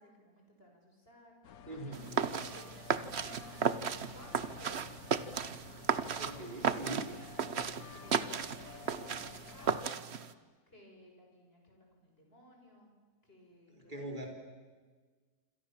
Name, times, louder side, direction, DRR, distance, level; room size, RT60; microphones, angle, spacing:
voice 1, 0.0-1.3 1.7-3.6 4.1-5.2 6.2-10.0 10.7-12.9 13.2-14.3, equal, 40° left, 1 dB, 6.7 m, -58 dB
sound 1, 1.4-9.9, left 8 dB, 70° left, 1.5 m, -52 dB
voice 2, 1.6-2.3 6.2-7.1 13.7-14.3, right 2 dB, 30° right, 1 dB, 5.1 m, -42 dB
sound 2, 1.9-10.3, right 6 dB, 50° right, 1.1 m, -35 dB
27.5 x 26.5 x 7.3 m, 1.4 s
omnidirectional pair, 1.6 m